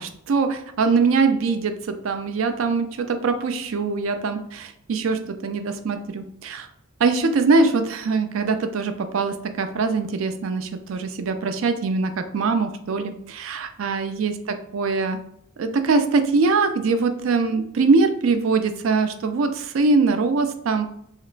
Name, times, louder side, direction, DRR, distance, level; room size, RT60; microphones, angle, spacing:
voice 1, 0.0-6.7 7.0-14.3 14.7-15.2 15.6-20.9, right 4 dB, 70° right, 8 dB, 0.4 m, -22 dB
3.2 x 2.9 x 2.4 m, 0.70 s
head